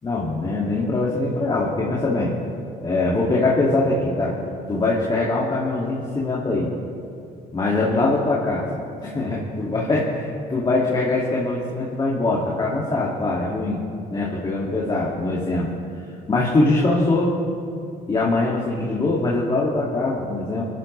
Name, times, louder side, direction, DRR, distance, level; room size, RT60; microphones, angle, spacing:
voice 1, 0.0-2.3 2.8-4.4 4.7-6.7 7.5-8.7 9.0-13.8 14.1-15.7 16.3-17.3 18.1-20.6, left 2 dB, 25° left, -5 dB, 2.3 m, -22 dB
28.5 x 11.5 x 3.3 m, 2.5 s
cardioid pair, 110°, 17 cm